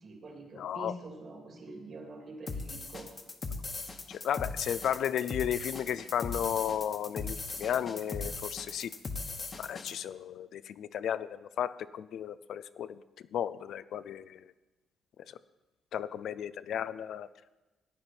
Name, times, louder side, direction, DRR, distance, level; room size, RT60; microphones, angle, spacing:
voice 1, 0.0-3.1, right 2 dB, 50° right, 1 dB, 2.9 m, -45 dB
voice 2, 0.5-0.9 4.1-8.9 9.6-14.5 15.9-17.3, left 9 dB, 70° left, 15 dB, 0.4 m, -34 dB
sound 1, 2.5-9.9, left 3 dB, 40° left, 1.3 m, -39 dB
15.5 x 9.6 x 4.4 m, 1.1 s
cardioid pair, 90°, 0 cm